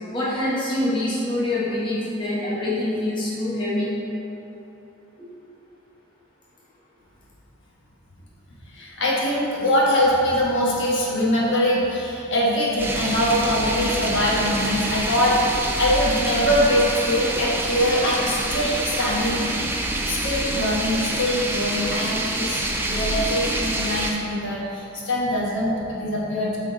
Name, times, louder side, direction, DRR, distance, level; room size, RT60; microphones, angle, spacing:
voice 1, 0.1-3.9 5.2-5.3, left 1 dB, 20° left, -8 dB, 0.9 m, -25 dB
voice 2, 8.7-19.5 20.0-26.6, left 1 dB, 55° left, -5 dB, 1.2 m, -23 dB
sound 1, 12.8-24.1, right 2 dB, 10° right, 0.4 m, -26 dB
8.4 x 3.7 x 3.7 m, 3.0 s
head